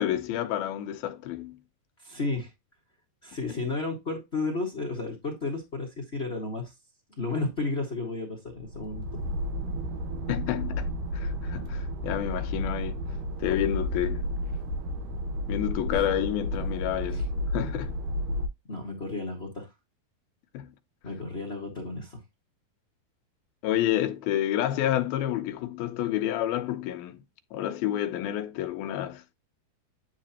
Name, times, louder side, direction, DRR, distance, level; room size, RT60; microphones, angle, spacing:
voice 1, 0.0-1.6 3.5-3.6 10.3-13.0 13.4-14.3 15.5-17.9 20.5-20.7 23.6-27.2 27.5-29.2, left 12 dB, 80° left, 2.7 m, -29 dB
voice 2, 2.0-2.5 3.2-6.7 7.2-9.0 18.7-19.7 21.0-22.2, left 3 dB, 60° left, 0.6 m, -32 dB
sound 1, 8.5-18.5, equal, 70° right, 2.3 m, -32 dB
9.8 x 4.0 x 2.9 m
omnidirectional pair, 4.3 m